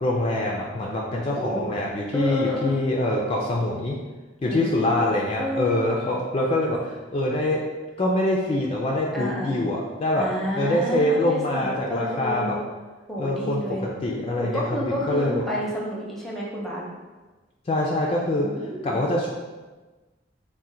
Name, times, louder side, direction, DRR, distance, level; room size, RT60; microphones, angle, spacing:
voice 1, 0.0-4.0 4.4-7.7 8.0-10.2 10.5-12.6 13.2-15.4 17.7-18.5 18.8-19.3, left 1 dB, 30° left, -2 dB, 0.4 m, -24 dB
voice 2, 1.2-1.6 2.1-2.8 4.4-5.8 9.1-9.6 10.1-12.6 13.1-13.8 14.4-16.8 18.4-19.0, equal, ahead, -4 dB, 0.7 m, -30 dB
3.7 x 2.1 x 4.2 m, 1.2 s
head